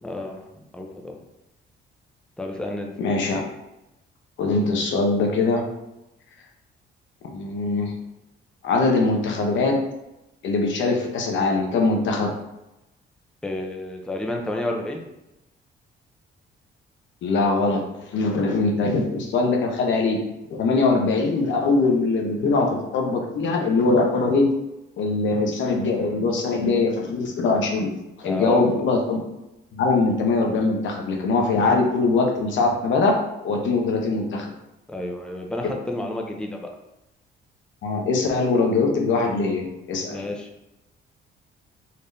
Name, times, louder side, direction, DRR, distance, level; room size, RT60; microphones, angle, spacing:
voice 1, 0.0-1.2 2.4-2.9 13.4-15.0 28.3-28.8 34.9-36.7 40.1-40.5, left 1 dB, 5° left, 1 dB, 0.6 m, -30 dB
voice 2, 3.0-3.4 4.4-5.6 7.3-7.9 8.6-9.8 10.4-12.3 17.2-17.8 18.1-20.2 20.6-24.5 25.0-27.9 28.2-29.2 29.7-33.1 33.4-34.5 37.8-40.2, left 3 dB, 70° left, 1 dB, 0.8 m, -22 dB
4.2 x 3.2 x 2.6 m, 0.92 s
cardioid pair, 90°, 20 cm